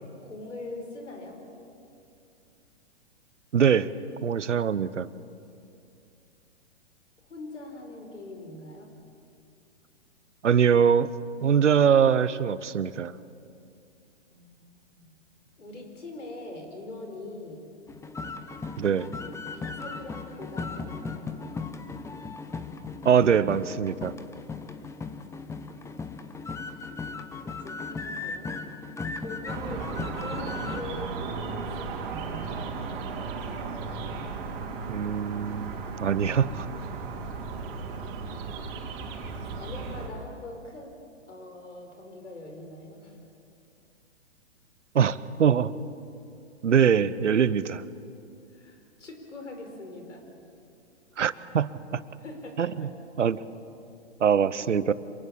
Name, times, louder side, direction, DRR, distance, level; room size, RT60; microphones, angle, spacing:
voice 1, 0.2-1.4 7.2-8.9 14.3-15.1 15.6-17.7 19.5-21.4 27.4-28.6 29.2-29.9 30.1-32.8 39.5-41.0 41.3-43.2 48.5-50.3 52.2-52.9, left 2 dB, 90° left, 3 dB, 5.2 m, -42 dB
voice 2, 3.5-3.9 4.2-5.1 10.4-11.1 11.4-13.1 18.8-19.1 23.0-24.1 34.9-36.7 44.9-45.7 46.6-47.8 51.2-52.0 52.6-52.9 53.2-53.4 54.2-54.9, right 7 dB, 90° right, 17 dB, 0.9 m, -23 dB
sound 1, 17.9-30.8, left 4 dB, 10° left, 1.0 m, -37 dB
sound 2, 29.5-40.1, right 4 dB, 45° right, 4.1 m, -35 dB
26.5 x 19.0 x 7.4 m, 2.5 s
hypercardioid pair, 130°, 35 cm